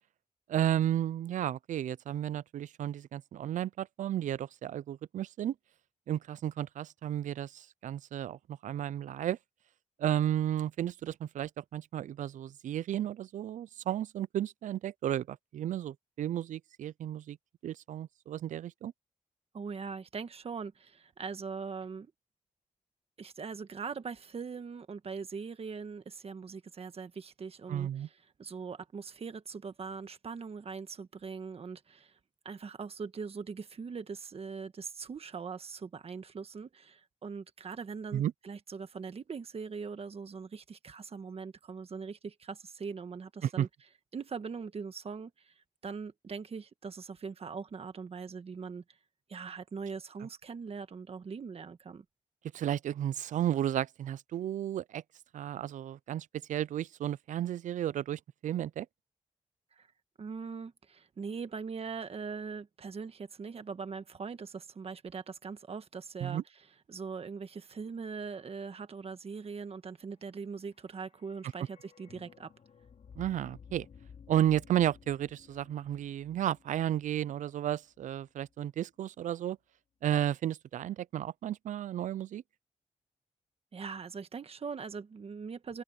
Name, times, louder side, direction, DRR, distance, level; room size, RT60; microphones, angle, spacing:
voice 1, 0.5-5.5 6.1-9.4 10.0-17.4 17.6-18.9 27.7-28.1 38.1-38.3 43.4-43.7 52.5-55.0 55.3-58.9 66.2-66.4 73.2-73.9 74.3-79.6 80.0-82.4, right 11 dB, 90° right, 0.4 m, -33 dB
voice 2, 19.5-22.1 23.2-28.1 28.4-32.2 32.4-43.7 44.1-48.8 49.3-52.0 59.8-59.9 60.2-66.4 66.9-72.5 83.7-85.8, right 5 dB, 55° right, 1.4 m, -41 dB
sound 1, 70.4-78.5 78.8-78.9, left 6 dB, 70° left, 5.7 m, -56 dB
wide cardioid pair, 105°, 12 cm